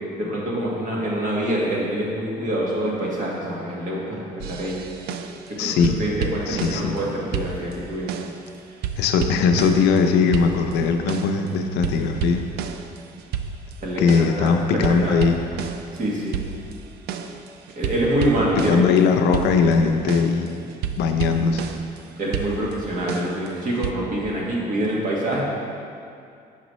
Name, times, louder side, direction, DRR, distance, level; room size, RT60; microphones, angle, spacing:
voice 1, 0.2-4.8 5.5-8.1 13.8-15.1 15.9-16.4 17.7-18.8 22.2-25.4, right 1 dB, 50° right, -4 dB, 1.5 m, -26 dB
sound 1, 4.4-5.5 5.8-7.0 7.3-8.5 8.8-10.0 10.3-11.5 11.8-14.5 14.8-19.0 19.3-22.0 22.3-23.9, right 7 dB, 70° right, 0.4 m, -31 dB
voice 2, 5.6-6.0 6.5-7.0 9.0-12.4 14.0-15.4 18.6-20.6 21.0-21.6, left 5 dB, 85° left, 6 dB, 0.5 m, -20 dB
6.0 x 6.0 x 3.1 m, 2.4 s
cardioid pair, 110°, 17 cm